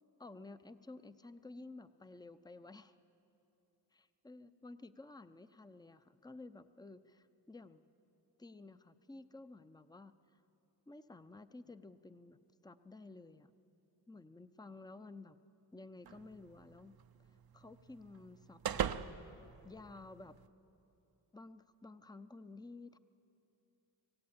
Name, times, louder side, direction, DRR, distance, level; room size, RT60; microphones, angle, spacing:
voice 1, 0.2-3.0 3.9-7.8 8.4-10.1 10.9-12.4 12.6-13.5 14.1-15.4 15.7-17.0 17.5-19.3 19.6-20.4 21.3-23.0, left 3 dB, 10° left, 11 dB, 0.7 m, -53 dB
sound 1, 16.1-20.5, right 8 dB, 55° right, 0.8 m, -43 dB
25.5 x 16.5 x 8.9 m, 2.9 s
cardioid pair, 60°, 43 cm